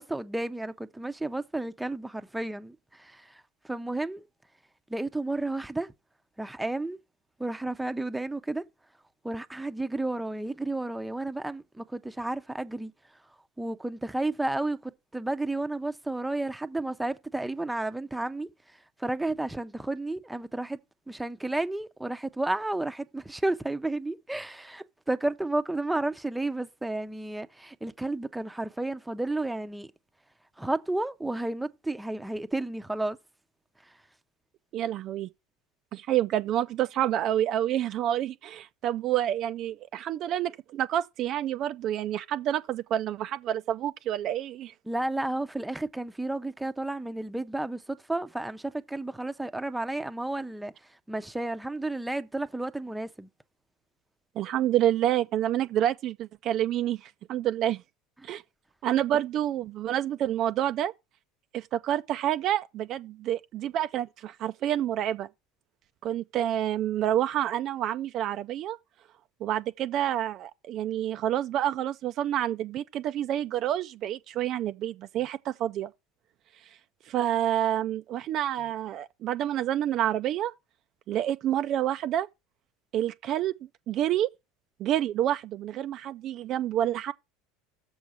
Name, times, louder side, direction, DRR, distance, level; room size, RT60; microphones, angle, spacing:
voice 1, 0.0-4.2 4.9-5.9 6.4-7.0 7.4-8.7 9.2-12.9 13.6-20.8 21.1-29.9 30.6-33.2 33.8-34.0 44.9-53.3 58.2-58.3, right 2 dB, 5° right, 0.7 m, -32 dB
voice 2, 34.7-35.3 35.9-44.7 54.4-57.8 58.2-58.4 58.8-60.9 61.5-65.3 66.0-68.8 69.4-75.9 77.1-80.5 81.1-82.3 82.9-83.5 83.9-84.3 84.8-87.1, right 11 dB, 50° right, 0.4 m, -28 dB
7.0 x 4.7 x 6.3 m
hypercardioid pair, 80°, 0 cm